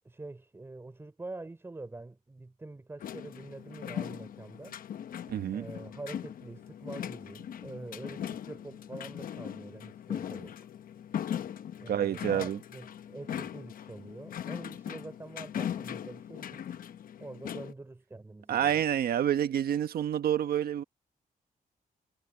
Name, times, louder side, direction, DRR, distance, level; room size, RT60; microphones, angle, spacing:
voice 1, 0.0-4.8 5.5-10.6 11.8-16.7 17.2-18.9, right 2 dB, 15° right, 3.3 m, -45 dB
sound 1, 3.0-17.7, left 9 dB, 65° left, 0.8 m, -40 dB
voice 2, 5.3-5.7 11.9-12.6 18.5-20.8, right 10 dB, 85° right, 1.2 m, -28 dB
wide cardioid pair, 160°, 15 cm